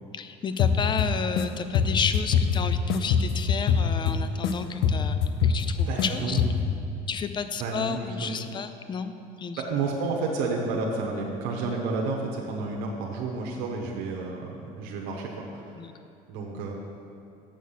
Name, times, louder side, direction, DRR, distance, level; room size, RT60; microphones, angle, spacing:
voice 1, 0.1-5.2 5.4-6.4 7.1-9.1 9.4-9.6 15.8-15.9, left 6 dB, 30° left, 10 dB, 0.5 m, -31 dB
sound 1, 0.6-1.4 1.7-4.5 4.8-6.1 6.4-6.8, left 6 dB, 75° left, 0.7 m, -24 dB
voice 2, 5.9-6.4 7.6-8.5 9.6-15.7 16.3-16.7, right 3 dB, 85° right, -1 dB, 1.0 m, -31 dB
7.3 x 6.5 x 5.6 m, 2.6 s
cardioid pair, 110°, 17 cm